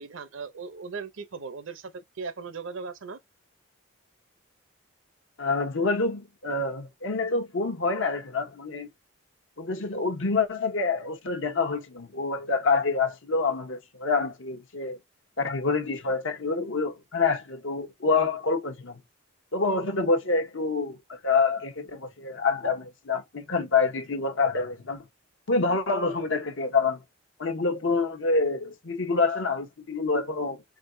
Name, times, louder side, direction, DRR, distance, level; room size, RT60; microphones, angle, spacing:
voice 1, 0.0-3.2, right 4 dB, 70° right, 0.6 m, -38 dB
voice 2, 5.4-8.9 9.6-15.0 15.4-19.0 19.5-25.0 25.5-27.0 27.4-30.6, left 4 dB, 70° left, 1.0 m, -27 dB
3.8 x 3.6 x 2.6 m
head